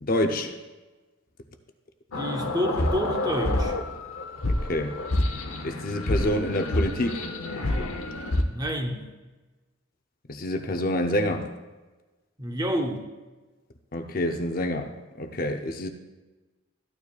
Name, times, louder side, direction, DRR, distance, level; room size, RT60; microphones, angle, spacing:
voice 1, 0.0-0.5 4.4-4.9 5.6-7.2 10.3-11.5 13.9-15.9, left 1 dB, 45° left, 5 dB, 0.6 m, -27 dB
sound 1, 2.1-8.4, left 1 dB, 90° left, 0.9 m, -28 dB
voice 2, 2.1-3.8 8.5-9.1 12.4-13.1, equal, 20° right, 3 dB, 0.7 m, -29 dB
14.0 x 9.4 x 2.4 m, 1.2 s
head